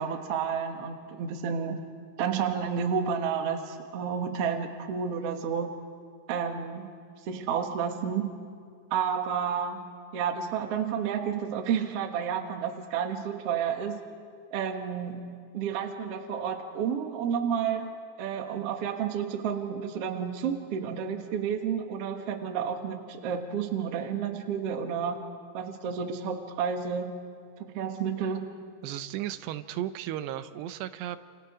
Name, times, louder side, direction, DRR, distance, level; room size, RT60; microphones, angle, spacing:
voice 1, 0.0-1.8 2.2-5.7 6.3-6.9 7.3-8.3 8.9-14.0 14.5-25.3 25.5-27.2 27.7-28.5, right 7 dB, 55° right, 4 dB, 1.7 m, -31 dB
voice 2, 28.8-31.2, right 12 dB, 85° right, 11 dB, 2.9 m, -35 dB
28.5 x 28.5 x 5.0 m, 2.2 s
omnidirectional pair, 4.8 m